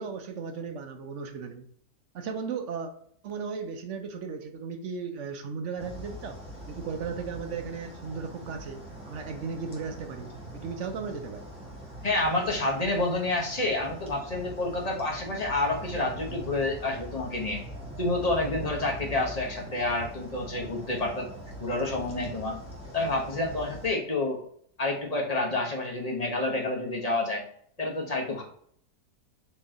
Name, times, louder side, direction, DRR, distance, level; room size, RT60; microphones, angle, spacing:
voice 1, 0.0-1.7 2.1-2.9 3.2-11.5, right 5 dB, 60° right, 6 dB, 0.8 m, -36 dB
sound 1, 5.8-23.9, right 1 dB, 5° right, 1.2 m, -42 dB
voice 2, 12.0-17.6 18.0-21.3 21.6-22.6 22.9-24.4 24.8-27.4 27.8-28.4, left 2 dB, 30° left, 0 dB, 0.9 m, -29 dB
4.5 x 3.1 x 3.7 m, 0.63 s
omnidirectional pair, 1.8 m